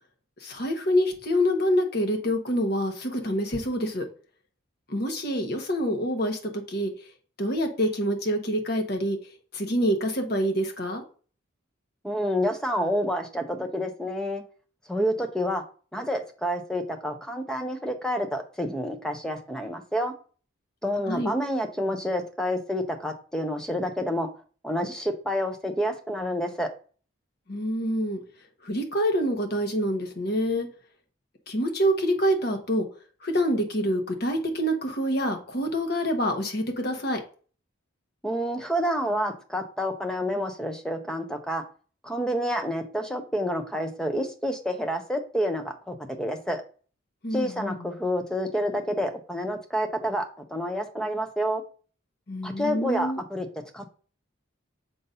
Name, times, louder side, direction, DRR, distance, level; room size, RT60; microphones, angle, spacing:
voice 1, 0.4-4.0 4.9-6.9 7.4-9.2 9.5-11.0 21.1-21.3 27.5-28.2 28.6-30.7 31.5-32.9 33.2-37.2 47.2-47.8 52.3-53.2, equal, 50° left, 5 dB, 1.1 m, -26 dB
voice 2, 12.0-14.4 14.9-15.6 15.9-20.1 20.8-24.3 24.6-26.7 38.2-41.6 42.0-46.6 47.3-51.6 52.4-53.5 53.7-53.8, equal, 5° left, 5 dB, 0.6 m, -28 dB
6.6 x 2.6 x 5.4 m, 0.40 s
head